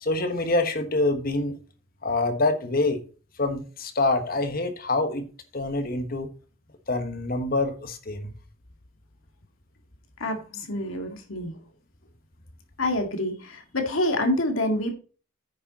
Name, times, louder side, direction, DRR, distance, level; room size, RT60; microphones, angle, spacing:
voice 1, 0.0-1.5 2.0-3.0 3.4-5.3 5.5-6.3 6.9-8.3, left 2 dB, 45° left, 1.3 m, -26 dB
voice 2, 10.2-11.6 12.8-14.9, left 1 dB, 75° left, 2.0 m, -27 dB
9.5 x 6.6 x 4.2 m
head